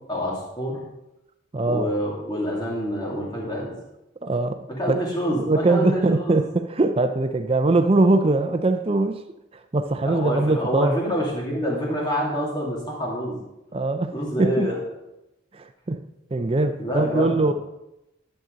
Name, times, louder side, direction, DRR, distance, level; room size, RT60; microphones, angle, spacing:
voice 1, 0.1-0.8 1.6-3.7 4.8-6.4 10.0-13.4 14.1-14.8 16.8-17.5, equal, 20° left, 2.6 m, -27 dB
voice 2, 1.5-1.9 4.2-5.0 5.4-9.2 9.7-11.0 13.7-14.1 14.4-14.7 15.5-16.0 16.3-17.5, right 2 dB, 30° right, 0.5 m, -22 dB
11.0 x 7.6 x 3.9 m
head